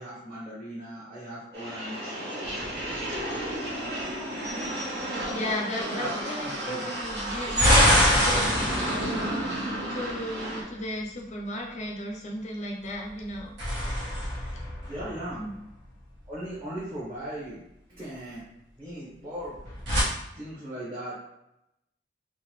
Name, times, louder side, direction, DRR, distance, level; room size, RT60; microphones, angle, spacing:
voice 1, 0.0-2.1 5.8-6.1 6.4-6.9 14.8-15.4 16.3-17.6 17.9-18.4 18.8-19.5 20.3-21.2, right 1 dB, 25° right, -9 dB, 1.0 m, -38 dB
sound 1, 1.5-10.6, right 1 dB, 65° right, 1.1 m, -33 dB
sound 2, 2.4-3.5 7.1-10.4 13.2-15.7 19.4-20.0, equal, 85° right, 1.3 m, -25 dB
voice 2, 5.3-9.4 9.9-13.5 15.3-15.5, left 1 dB, 40° left, -1 dB, 0.5 m, -35 dB
3.7 x 2.6 x 3.0 m, 0.85 s
head